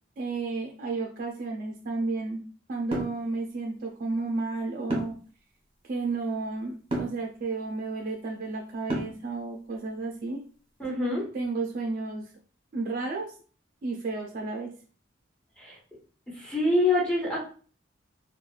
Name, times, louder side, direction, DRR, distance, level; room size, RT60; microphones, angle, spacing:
voice 1, 0.2-2.4 2.7-5.1 5.8-10.4 11.3-12.3 12.7-13.3 13.8-14.7, right 3 dB, 45° right, 1 dB, 0.4 m, -32 dB
sound 1, 2.9-3.2 4.9-5.3 6.9-7.2 8.9-9.3, right 1 dB, 30° right, 1.0 m, -30 dB
voice 2, 10.8-11.2 15.6-15.7 16.3-17.4, left 2 dB, 5° left, -5 dB, 1.1 m, -25 dB
3.0 x 2.3 x 2.3 m, 0.40 s
head